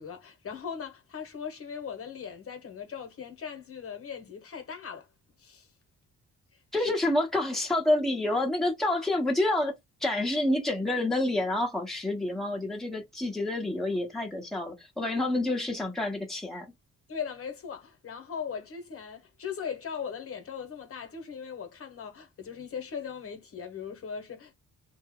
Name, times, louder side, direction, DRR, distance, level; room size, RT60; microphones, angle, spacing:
voice 1, 0.0-5.1 5.4-5.7 6.5-6.9 17.1-24.5, left 7 dB, 50° left, 1.1 m, -39 dB
voice 2, 6.7-16.7, left 1 dB, ahead, 1.0 m, -28 dB
2.7 x 2.2 x 3.6 m
cardioid pair, 90°, 30 cm